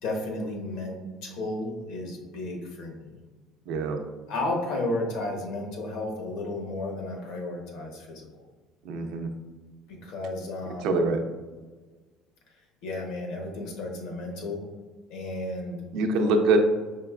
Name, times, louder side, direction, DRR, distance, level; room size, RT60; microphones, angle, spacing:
voice 1, 0.0-3.1 4.3-8.3 9.9-11.0 12.8-14.6 15.1-15.8, left 2 dB, 80° left, 1 dB, 1.0 m, -33 dB
voice 2, 3.7-4.0 8.8-9.3 10.8-11.2 15.9-16.6, right 3 dB, 75° right, 4 dB, 0.5 m, -24 dB
5.0 x 3.0 x 2.4 m, 1.3 s
cardioid pair, 125°, 0 cm